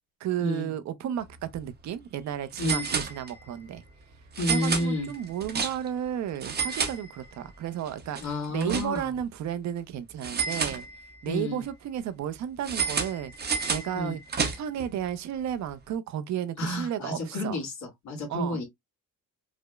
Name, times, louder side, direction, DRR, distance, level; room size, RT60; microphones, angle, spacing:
voice 1, 0.2-3.8 4.5-10.9 11.2-14.2 14.6-17.6 18.3-18.6, right 10 dB, 70° right, 0.6 m, -33 dB
sound 1, 1.4-1.6 1.8-1.9 2.5-3.6 4.3-6.0 6.3-7.5 7.9-9.2 10.2-11.3 12.6-14.9, right 5 dB, 35° right, 0.8 m, -31 dB
voice 2, 4.4-5.1 8.2-9.1 11.2-11.6 13.9-14.2 16.6-18.6, left 1 dB, 70° left, 2.2 m, -30 dB
4.9 x 2.1 x 2.2 m
cardioid pair, 140°, 30 cm